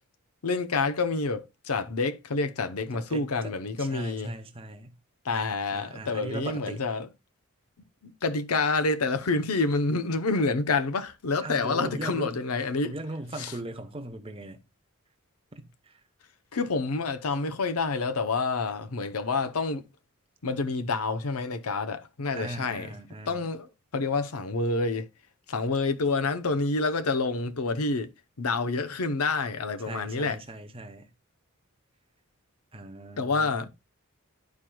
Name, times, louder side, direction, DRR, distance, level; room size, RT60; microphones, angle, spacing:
voice 1, 0.4-4.3 5.2-7.1 8.0-12.9 13.4-13.5 16.5-19.8 20.4-22.9 23.3-25.1 25.5-28.1 28.4-30.4 33.2-33.7, left 3 dB, 80° left, 0.7 m, -28 dB
voice 2, 2.9-4.9 5.7-6.8 11.4-12.3 12.8-14.6 15.5-15.9 22.3-23.5 29.8-31.1 32.7-33.7, right 2 dB, 25° right, 0.8 m, -39 dB
11.5 x 4.5 x 2.3 m
head